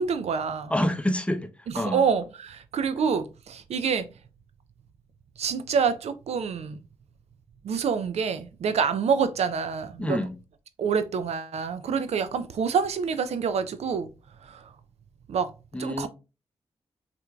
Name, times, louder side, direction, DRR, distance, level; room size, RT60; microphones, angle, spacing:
voice 1, 0.0-0.7 1.7-4.1 5.4-6.8 7.6-10.2 10.8-14.1 14.4-14.7 15.3-15.5 15.8-16.1, right 6 dB, 75° right, 0.4 m, -27 dB
voice 2, 0.7-2.0 10.0-10.3 15.7-16.1, left 1 dB, 10° left, 0.6 m, -27 dB
4.2 x 2.5 x 2.3 m
cardioid pair, 45°, 11 cm